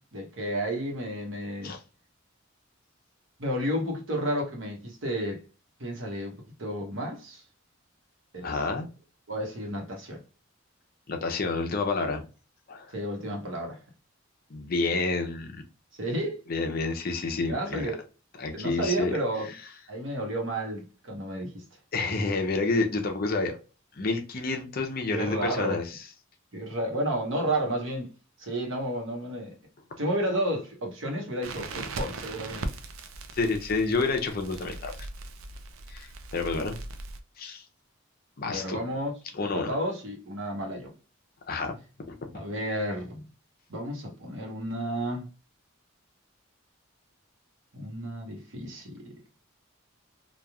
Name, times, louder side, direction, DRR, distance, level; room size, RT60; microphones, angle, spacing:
voice 1, 0.1-1.8 3.4-5.4 5.8-7.4 8.3-8.6 9.3-10.2 12.9-13.8 16.0-16.4 17.5-18.0 18.5-19.5 19.9-21.6 25.1-25.8 26.5-28.1 28.4-29.5 30.0-32.6 38.5-39.1 39.5-40.9 42.3-43.2 43.7-45.3 47.7-48.9, right 1 dB, 65° right, 1.0 m, -31 dB
voice 2, 8.4-8.9 11.1-12.2 12.7-12.9 14.5-15.6 16.5-17.9 18.4-19.1 21.9-23.6 23.9-26.0 33.3-34.9 35.9-36.8 37.4-37.6 38.4-38.8 39.3-39.7 41.5-41.8 42.1-42.2, left 3 dB, 45° left, 0.6 m, -29 dB
Crackle, 31.4-37.2, right 2 dB, 90° right, 0.4 m, -39 dB
3.0 x 2.3 x 2.3 m
head